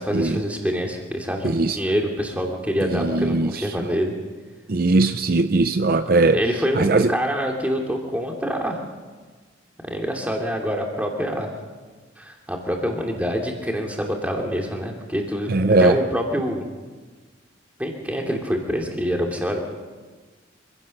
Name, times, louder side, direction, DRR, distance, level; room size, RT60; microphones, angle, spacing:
voice 1, 0.0-4.2 6.3-8.8 9.8-11.5 12.2-15.5 15.8-16.6 17.8-19.6, equal, 5° right, 2.7 m, -26 dB
voice 2, 1.4-1.8 3.0-3.5 4.7-6.4 6.8-7.1 15.5-16.0, right 3 dB, 45° right, 0.6 m, -19 dB
25.5 x 16.5 x 6.6 m
head